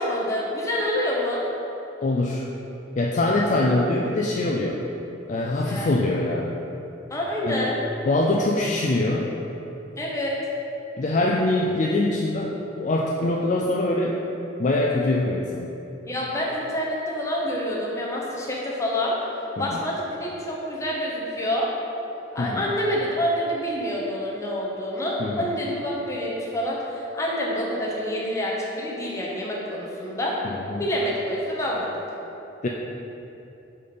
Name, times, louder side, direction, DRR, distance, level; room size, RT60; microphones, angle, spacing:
voice 1, 0.0-1.4 5.5-5.9 7.1-7.8 10.0-10.4 16.1-19.2 19.6-21.7 22.3-30.4 30.8-31.9, equal, 15° left, -4 dB, 0.9 m, -27 dB
voice 2, 2.0-2.5 3.0-4.8 5.3-6.5 7.4-7.7 8.1-9.3 11.0-14.2 14.6-15.7 19.6-19.8 22.4-22.6 25.2-25.5 30.4-30.8 32.6-32.7, left 2 dB, 40° left, -2 dB, 0.3 m, -23 dB
5.0 x 4.3 x 5.1 m, 2.9 s
head